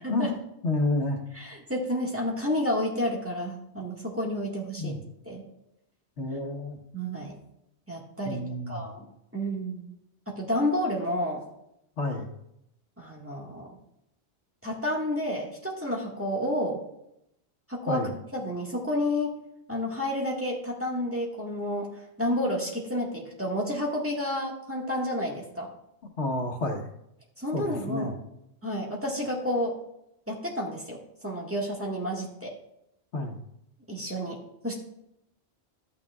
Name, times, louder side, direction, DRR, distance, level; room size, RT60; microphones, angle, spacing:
voice 1, 0.0-0.3 1.3-5.0 5.2-5.4 6.9-7.3 7.9-8.4 8.7-9.0 9.3-9.9 10.3-11.4 13.0-13.8 14.6-16.8 17.7-18.0 18.3-19.3 19.7-21.9 22.2-25.7 27.4-28.1 28.6-29.8 30.3-31.0 31.2-32.5 33.9-34.4 34.6-34.7, left 1 dB, 10° right, -3 dB, 1.6 m, -30 dB
voice 2, 0.6-1.2 4.8-5.0 6.2-6.8 8.2-8.8 12.0-12.3 17.9-18.1 26.2-26.9 27.5-28.1 33.1-33.4, left 2 dB, 85° left, 2 dB, 1.5 m, -29 dB
12.5 x 9.1 x 2.4 m, 0.79 s
omnidirectional pair, 1.1 m